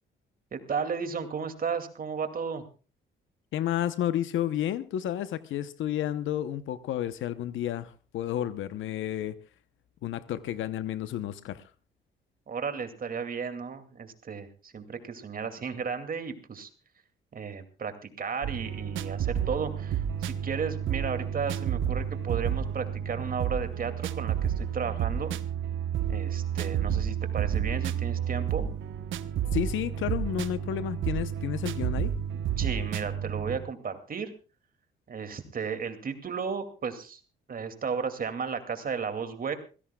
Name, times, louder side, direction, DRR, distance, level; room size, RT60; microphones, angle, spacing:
voice 1, 0.5-2.6 12.5-16.7 17.3-25.4 26.1-28.7 32.6-34.3 35.1-37.2 37.5-39.6, right 6 dB, 45° right, 2.4 m, -34 dB
voice 2, 3.5-9.4 10.0-11.7 29.5-32.1, left 11 dB, 80° left, 0.9 m, -31 dB
sound 1, 18.4-33.6, right 9 dB, 75° right, 1.1 m, -30 dB
26.0 x 16.5 x 2.3 m
cardioid pair, 90°, 20 cm